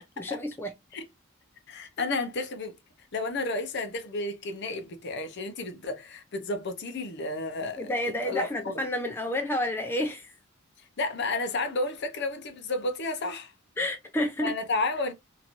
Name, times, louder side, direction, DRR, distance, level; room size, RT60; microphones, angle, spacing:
voice 1, 0.2-0.7 7.8-10.3 13.8-14.5, left 1 dB, 10° left, 0.4 m, -30 dB
voice 2, 1.7-2.7 3.1-7.9 8.2-8.8 11.0-13.5 14.4-15.1, left 2 dB, 55° left, 0.7 m, -32 dB
2.9 x 2.5 x 2.9 m
head